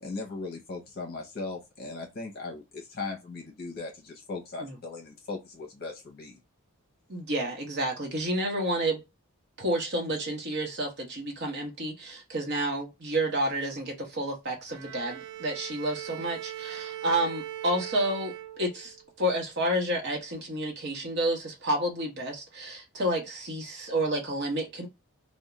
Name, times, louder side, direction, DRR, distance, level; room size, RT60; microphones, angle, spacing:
voice 1, 0.0-6.4, left 3 dB, 45° left, 0.8 m, -38 dB
voice 2, 7.1-9.0 9.6-24.9, right 1 dB, 50° right, 0.9 m, -30 dB
Bowed string instrument, 14.7-19.1, right 12 dB, 85° right, 0.4 m, -40 dB
2.4 x 2.1 x 2.9 m
head